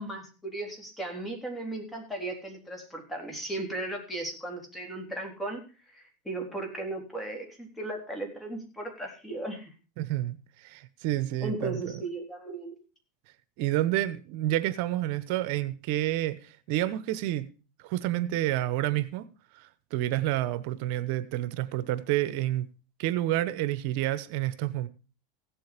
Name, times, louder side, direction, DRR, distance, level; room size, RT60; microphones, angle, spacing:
voice 1, 0.0-5.6 5.9-9.7 11.4-12.7, right 2 dB, 10° left, 3.7 m, -36 dB
voice 2, 10.0-12.0 13.6-17.5 17.8-19.3 19.5-22.7 23.0-24.9, right 14 dB, 60° right, 1.0 m, -29 dB
16.0 x 7.7 x 5.1 m
supercardioid pair, 135°, 0 cm